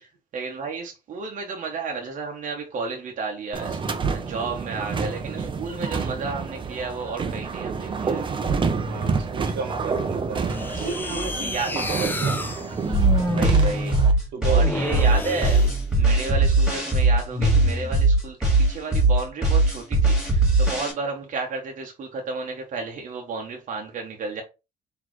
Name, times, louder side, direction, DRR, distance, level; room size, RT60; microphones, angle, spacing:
voice 1, 0.0-8.3 10.7-10.9 11.3-11.7 13.2-14.0 14.5-24.4, right 4 dB, 50° right, 1.0 m, -32 dB
sound 1, 3.5-14.1, right 5 dB, 30° right, 0.6 m, -28 dB
voice 2, 8.8-12.3 14.3-15.0, right 5 dB, 75° right, 1.3 m, -33 dB
sound 2, 10.5-16.4 17.3-18.0, left 2 dB, 10° left, 0.5 m, -29 dB
sound 3, 12.9-20.9, right 2 dB, 5° right, 1.8 m, -19 dB
4.1 x 3.0 x 3.1 m
cardioid pair, 110°, 17 cm